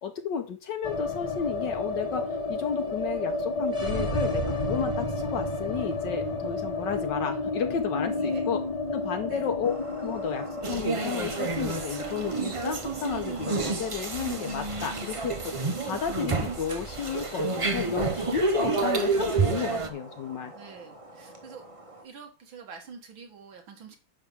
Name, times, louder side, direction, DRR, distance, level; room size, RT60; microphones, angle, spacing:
voice 1, 0.0-8.6 8.9-20.5, left 7 dB, 70° left, 6 dB, 1.5 m, -33 dB
sound 1, 0.8-16.9 17.2-17.3 17.6-18.3, left 2 dB, 20° left, 1.1 m, -32 dB
voice 2, 8.1-8.5 9.3-9.5 20.5-21.6 22.0-24.0, right 6 dB, 85° right, 4 dB, 2.5 m, -46 dB
sound 2, 9.6-22.0, right 1 dB, 20° right, 1.5 m, -45 dB
sound 3, 10.6-19.9, right 4 dB, 50° right, 0.3 m, -29 dB
10.5 x 3.5 x 7.2 m, 0.34 s
omnidirectional pair, 2.1 m